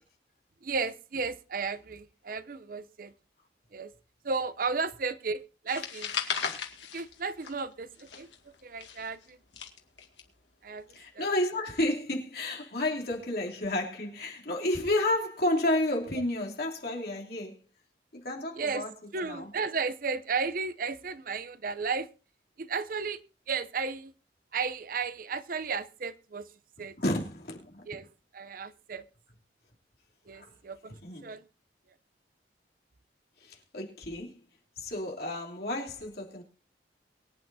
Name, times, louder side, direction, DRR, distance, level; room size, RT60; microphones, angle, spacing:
voice 1, 0.6-3.1 3.7-3.9 4.2-6.1 6.9-8.3 8.6-9.4 10.6-10.8 11.2-11.3 18.6-22.1 22.6-23.2 23.5-24.1 24.5-26.5 26.8-26.9 27.9-28.1 28.3-29.0 30.3-30.9 31.2-31.4, right 4 dB, 50° right, 0.6 m, -34 dB
sound 1, 5.7-7.7 8.0-10.2, left 7 dB, 85° left, 2.2 m, -36 dB
voice 2, 10.9-17.6 18.2-18.9 19.2-19.5 26.8-27.8 30.3-30.5 30.9-31.3 33.4-34.3 34.8-36.4, left 1 dB, 55° left, 3.0 m, -31 dB
23.0 x 9.0 x 2.7 m
head